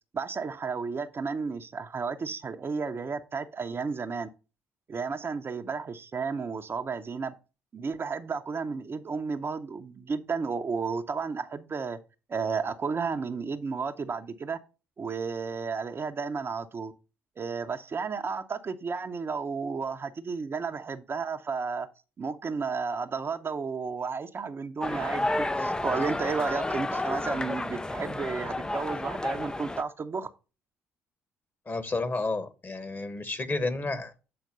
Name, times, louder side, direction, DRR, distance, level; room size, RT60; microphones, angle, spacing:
voice 1, 0.1-4.3 4.9-7.3 7.7-12.0 12.3-14.6 15.0-16.9 17.4-21.9 22.2-30.3, right 5 dB, 35° right, 0.7 m, -32 dB
sound 1, 24.8-29.8, left 2 dB, 10° left, 0.4 m, -31 dB
voice 2, 31.7-34.2, left 3 dB, 30° left, 1.4 m, -31 dB
7.8 x 4.4 x 5.4 m
hypercardioid pair, 50°, 7 cm